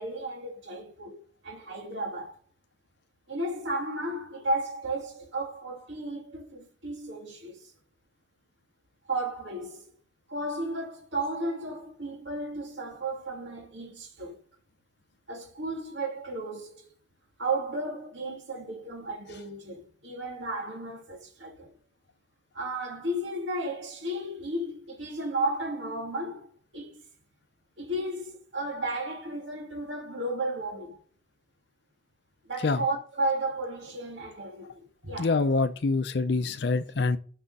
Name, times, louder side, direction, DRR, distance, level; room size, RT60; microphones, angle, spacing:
voice 1, 0.0-2.4 3.3-7.7 9.1-9.9 10.3-14.4 15.3-16.9 17.4-21.7 22.5-27.0 27.8-31.0 32.5-35.4, right 2 dB, 80° right, 2.1 m, -34 dB
voice 2, 35.2-37.2, left 3 dB, 60° left, 0.5 m, -25 dB
6.3 x 5.5 x 5.3 m
head